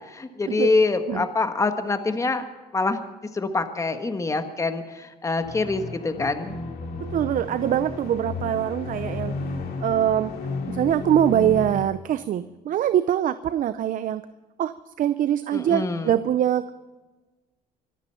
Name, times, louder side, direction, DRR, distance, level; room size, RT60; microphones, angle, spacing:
voice 1, 0.1-2.4 2.7-3.0 3.3-6.5 15.5-16.1, left 3 dB, 20° left, 8 dB, 1.4 m, -25 dB
sound 1, 5.4-11.8, left 3 dB, 65° left, 2.9 m, -33 dB
voice 2, 7.0-9.3 9.8-10.3 10.7-14.2 14.6-16.7, right 10 dB, 55° right, 13 dB, 0.6 m, -23 dB
24.5 x 9.1 x 5.8 m, 1.2 s
cardioid pair, 110°, 17 cm